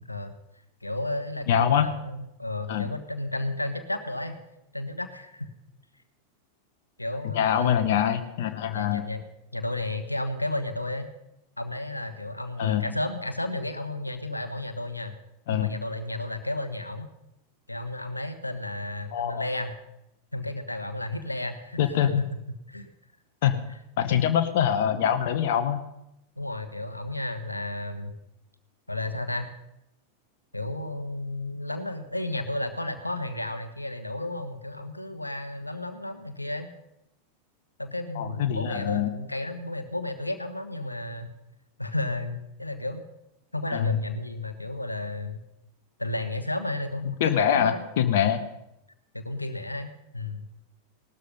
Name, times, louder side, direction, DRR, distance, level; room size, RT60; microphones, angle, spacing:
voice 1, 0.8-4.4 4.7-5.5 7.0-7.7 8.7-9.2 9.5-11.1 11.6-15.1 15.5-17.1 17.7-19.7 20.3-22.9 26.4-28.1 28.9-29.5 30.5-36.7 37.8-41.3 41.8-43.0 43.5-45.4 46.0-47.8 49.1-50.4, left 1 dB, 85° left, 9 dB, 1.3 m, -33 dB
voice 2, 1.5-1.9 2.7-2.9 7.3-9.0 12.6-12.9 15.5-15.7 19.1-19.4 21.8-22.2 23.4-23.6 24.0-25.8 38.1-39.1 43.7-44.0 47.0-48.4, left 9 dB, 55° left, 8 dB, 1.0 m, -24 dB
18.5 x 13.0 x 5.4 m, 0.86 s
figure-of-eight pair, 90°, 0 cm